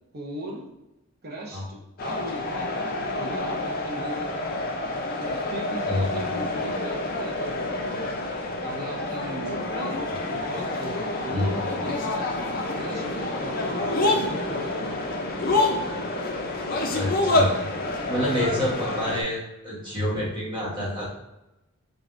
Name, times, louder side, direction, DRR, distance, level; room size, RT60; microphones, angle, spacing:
voice 1, 0.1-0.7 1.2-4.7 5.2-8.2 8.6-13.1 13.4-15.0, right 1 dB, 45° right, -1 dB, 0.6 m, -38 dB
sound 1, 2.0-19.2, left 2 dB, 40° left, 0.4 m, -28 dB
voice 2, 16.9-17.6 18.1-21.1, left 1 dB, 20° right, -6 dB, 1.1 m, -27 dB
3.9 x 3.3 x 2.5 m, 0.94 s
head